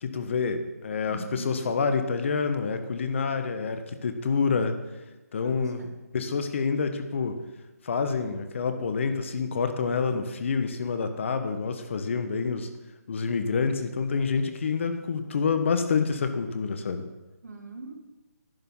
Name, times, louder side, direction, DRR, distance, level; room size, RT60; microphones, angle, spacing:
voice 1, 0.0-4.8 5.3-5.8 6.1-7.4 7.8-12.7 13.1-17.1, left 5 dB, 45° left, 8 dB, 1.3 m, -27 dB
voice 2, 1.0-1.6 5.4-5.9 17.4-17.9, right 3 dB, 70° right, 3 dB, 2.3 m, -41 dB
11.0 x 9.3 x 5.6 m, 1.1 s
figure-of-eight pair, 155°, 9 cm